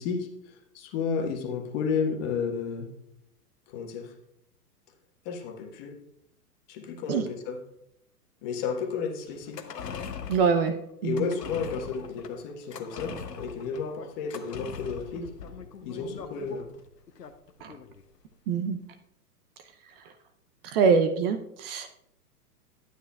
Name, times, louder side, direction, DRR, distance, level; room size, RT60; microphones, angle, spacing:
voice 1, 0.0-2.9 3.7-4.1 5.2-6.0 6.7-7.6 8.4-9.6 11.0-15.3 15.8-16.7, left 5 dB, 40° left, 3 dB, 1.5 m, -32 dB
sound 1, 9.4-18.0 18.3-18.4, left 6 dB, 90° left, 0.9 m, -41 dB
voice 2, 10.3-10.8 11.0-11.3 17.6-17.7 18.5-18.8 20.0-20.1 20.6-21.9, right 5 dB, 40° right, 8 dB, 0.7 m, -24 dB
11.0 x 9.4 x 2.3 m, 0.78 s
hypercardioid pair, 115°, 47 cm